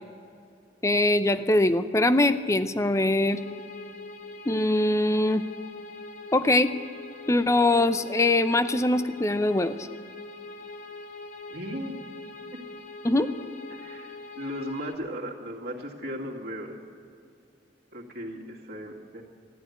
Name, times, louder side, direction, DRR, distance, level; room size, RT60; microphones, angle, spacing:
voice 1, 0.8-3.4 4.5-5.4 6.3-6.7 7.3-9.8 13.0-13.3, left 2 dB, 15° left, 12 dB, 0.6 m, -22 dB
sound 1, 3.3-14.9, left 3 dB, 45° left, 1.3 m, -43 dB
voice 2, 11.5-12.0 12.5-12.6 13.7-16.8 17.9-19.2, equal, 60° right, -1 dB, 2.2 m, -36 dB
13.5 x 11.0 x 9.4 m, 2.4 s
head